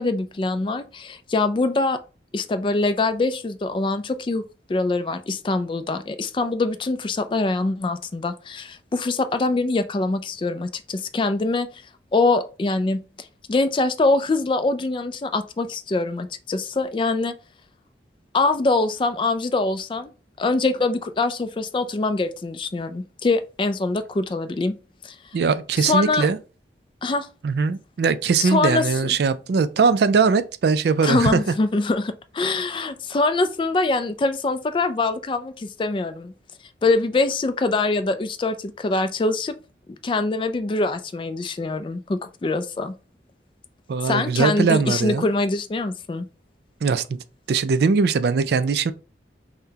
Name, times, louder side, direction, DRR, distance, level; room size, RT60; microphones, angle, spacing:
voice 1, 0.0-2.0 2.3-4.4 4.7-11.7 12.1-17.3 18.3-20.1 20.4-24.8 25.0-25.2 25.8-26.3 27.0-27.3 28.4-29.1 31.0-36.3 36.8-39.5 40.0-42.9 44.0-46.3, left 3 dB, 25° left, 0.3 m, -24 dB
voice 2, 25.3-26.4 27.4-31.4 43.9-45.3 46.8-48.9, right 5 dB, 60° right, 0.3 m, -21 dB
5.7 x 2.1 x 2.7 m
head